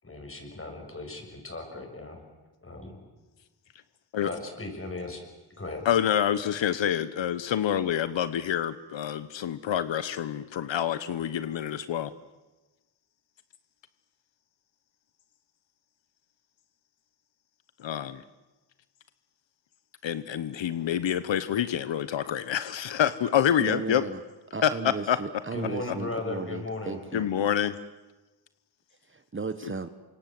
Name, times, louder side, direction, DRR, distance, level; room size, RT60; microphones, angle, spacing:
voice 1, 0.0-2.2 2.6-3.0 4.2-5.2 5.6-5.9 25.5-27.0, left 2 dB, 30° left, 3 dB, 6.8 m, -36 dB
voice 2, 5.8-12.1 17.8-18.2 20.0-24.0 24.6-24.7 25.1-25.2 27.1-27.8, left 10 dB, 85° left, 13 dB, 1.1 m, -27 dB
voice 3, 23.6-24.2 24.5-27.3 29.0-29.9, right 4 dB, 25° right, 10 dB, 1.2 m, -35 dB
29.0 x 25.5 x 7.7 m, 1.1 s
wide cardioid pair, 130°, 44 cm